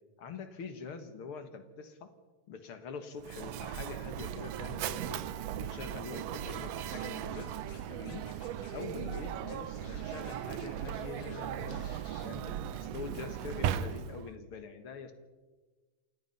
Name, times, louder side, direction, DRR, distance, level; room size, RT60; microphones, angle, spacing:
voice 1, 0.2-2.1 2.5-5.2 5.6-7.5 7.9-8.3 8.7-11.8 12.2-15.1, left 5 dB, 50° left, 9 dB, 2.0 m, -44 dB
Mechanisms, 3.2-14.3, right 10 dB, 75° right, 1.5 m, -37 dB
Scratching (performance technique), 6.9-7.8 8.1-8.8 9.1-9.2 9.5-11.4 11.7-12.2, left 4 dB, 75° left, 5.5 m, -55 dB
28.5 x 16.5 x 5.5 m, 1.3 s
omnidirectional pair, 3.7 m